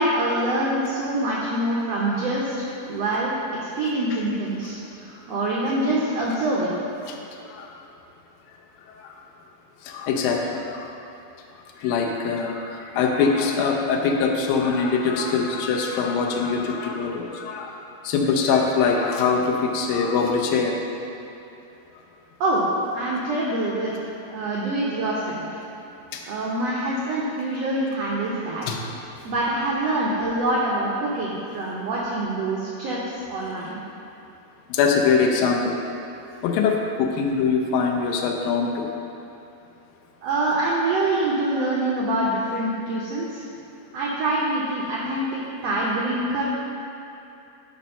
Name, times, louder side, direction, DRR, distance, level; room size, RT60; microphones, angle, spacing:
voice 1, 0.0-6.7 22.4-22.7 22.9-23.9 24.3-25.5 26.3-28.6 29.2-33.0 33.3-33.8 40.2-43.4 43.9-45.2 45.6-46.4, right 1 dB, 75° right, -5 dB, 1.5 m, -25 dB
voice 2, 9.9-10.9 11.8-17.7 18.0-20.7 28.7-28.8 34.7-35.7 36.4-38.9, left 5 dB, 80° left, 1 dB, 2.5 m, -23 dB
11.0 x 4.4 x 5.4 m, 2.8 s
omnidirectional pair, 4.2 m